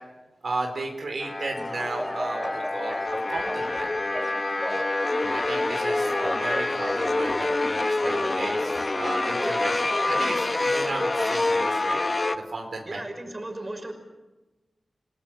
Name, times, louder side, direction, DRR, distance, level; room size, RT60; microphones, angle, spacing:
voice 1, 0.4-3.9 5.2-9.7 10.1-12.0 12.3-13.0, right 2 dB, 75° right, 3 dB, 4.5 m, -34 dB
sound 1, 1.2-12.4, left 2 dB, 40° left, 1.2 m, -26 dB
Speech / Cough, 1.6-3.8 4.1-5.0 5.9-7.1 8.0-10.3, equal, ahead, 3.9 m, -35 dB
voice 2, 9.4-9.7 12.9-13.9, right 1 dB, 35° right, 5 dB, 5.7 m, -36 dB
29.5 x 19.0 x 9.1 m, 1.1 s
wide cardioid pair, 80°, 0 cm